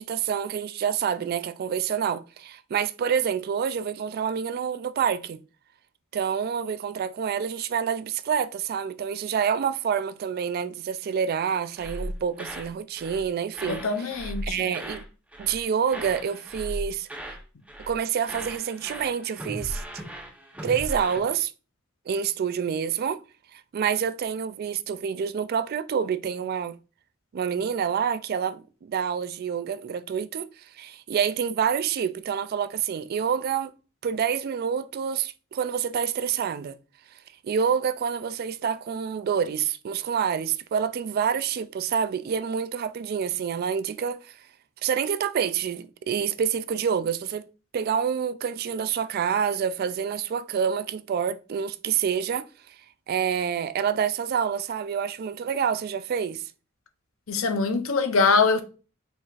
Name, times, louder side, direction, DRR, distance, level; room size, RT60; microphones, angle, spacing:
voice 1, 0.0-5.4 6.1-13.9 14.4-15.0 15.4-17.1 17.9-19.8 20.6-21.5 22.1-23.2 23.5-26.8 27.3-33.7 34.0-36.8 37.1-37.2 37.4-44.4 44.8-47.5 47.7-52.8 53.1-56.4, right 7 dB, 50° right, 0.3 m, -27 dB
sound 1, 11.8-12.7 13.0-13.2 13.5-15.1 15.3-15.6 15.9-17.4 17.7-18.0 18.2-21.2, equal, 5° right, 0.8 m, -37 dB
voice 2, 13.7-14.7 57.3-58.6, left 4 dB, 75° left, 0.7 m, -23 dB
4.5 x 4.0 x 2.4 m
head